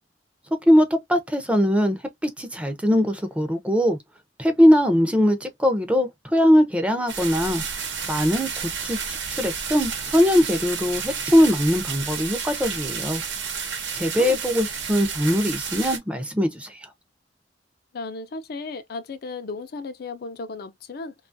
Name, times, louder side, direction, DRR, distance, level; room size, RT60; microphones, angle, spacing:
voice 1, 0.7-4.0 4.4-7.6 8.1-8.5 8.8-13.2 13.9-16.8, equal, 5° right, 0.5 m, -21 dB
sound 1, 7.1-16.0, right 6 dB, 85° right, 0.9 m, -31 dB
voice 2, 17.9-21.1, left 3 dB, 55° left, 0.4 m, -35 dB
2.8 x 2.4 x 2.6 m
head